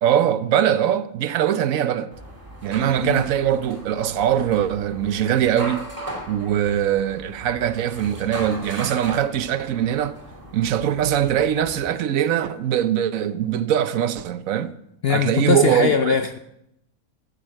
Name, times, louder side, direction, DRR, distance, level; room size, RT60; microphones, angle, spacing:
voice 1, 0.0-2.1 2.6-5.9 6.3-10.2 10.5-14.7 15.1-16.2, right 10 dB, 70° right, 1.0 m, -22 dB
sound 1, 2.1-11.9, right 1 dB, 15° right, 2.2 m, -38 dB
voice 2, 15.0-16.4, left 7 dB, 60° left, 0.6 m, -21 dB
15.0 x 6.5 x 7.6 m
omnidirectional pair, 1.6 m